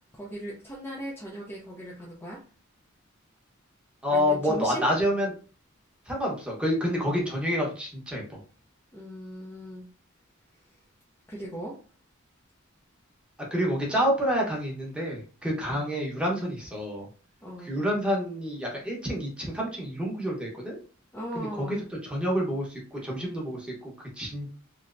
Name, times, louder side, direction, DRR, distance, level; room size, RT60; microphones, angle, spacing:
voice 1, 0.1-2.4 4.1-4.9 8.9-9.9 11.3-11.7 15.7-15.9 17.4-17.7 21.1-21.8, right 1 dB, 10° left, -5 dB, 0.6 m, -38 dB
voice 2, 4.0-5.3 6.1-8.4 13.5-17.1 17.6-20.8 21.3-21.8 22.0-24.5, equal, 5° right, -3 dB, 1.0 m, -28 dB
3.2 x 2.8 x 2.5 m, 0.38 s
head